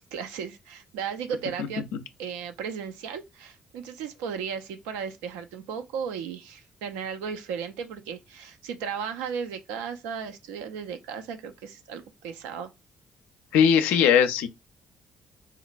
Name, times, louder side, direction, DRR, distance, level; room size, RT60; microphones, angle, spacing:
voice 1, 0.1-1.8 2.2-12.7, right 7 dB, 80° right, 0.4 m, -35 dB
voice 2, 13.5-14.5, left 8 dB, 75° left, 0.4 m, -19 dB
3.8 x 2.1 x 2.5 m
hypercardioid pair, 45°, 3 cm